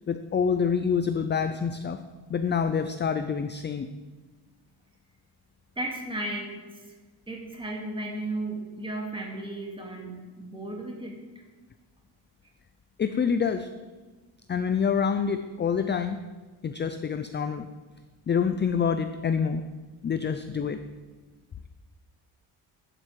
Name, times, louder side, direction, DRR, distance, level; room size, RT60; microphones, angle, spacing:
voice 1, 0.1-2.0 2.3-3.9 13.0-13.7 14.5-16.2 16.6-17.7 18.3-19.6 20.0-20.8, left 6 dB, 25° left, 9 dB, 0.5 m, -26 dB
voice 2, 5.8-6.9 7.3-11.1, right 1 dB, 10° right, 0 dB, 2.3 m, -35 dB
11.5 x 8.1 x 7.5 m, 1.3 s
cardioid pair, 155°, 41 cm